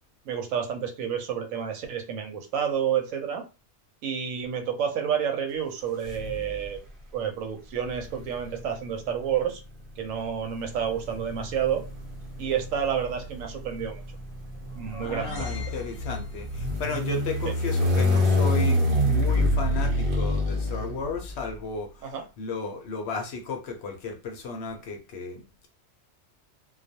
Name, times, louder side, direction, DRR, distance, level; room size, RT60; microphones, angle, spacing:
voice 1, 0.3-3.4 4.0-6.8 7.1-9.6 10.0-11.8 12.4-14.0 14.8-15.5 22.1-22.2, right 8 dB, 85° right, 5 dB, 1.0 m, -29 dB
sound 1, 6.0-6.8 7.8-21.5, left 1 dB, 50° right, 0.8 m, -27 dB
sound 2, 14.4-16.7, left 4 dB, 30° left, 0.8 m, -37 dB
voice 2, 15.0-25.7, left 4 dB, 65° left, 4 dB, 0.8 m, -34 dB
2.3 x 2.2 x 2.7 m, 0.31 s
omnidirectional pair, 1.3 m